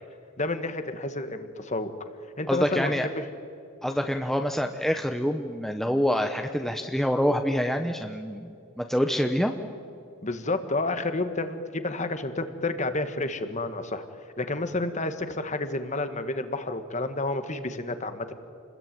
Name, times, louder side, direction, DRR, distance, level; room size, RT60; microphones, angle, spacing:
voice 1, 0.4-1.9 2.4-3.2 10.2-14.0 14.4-18.3, left 2 dB, 35° left, 9 dB, 1.7 m, -30 dB
voice 2, 2.5-3.1 3.8-8.5 8.8-9.5, equal, ahead, 5 dB, 0.9 m, -26 dB
29.0 x 21.0 x 9.4 m, 2.4 s
head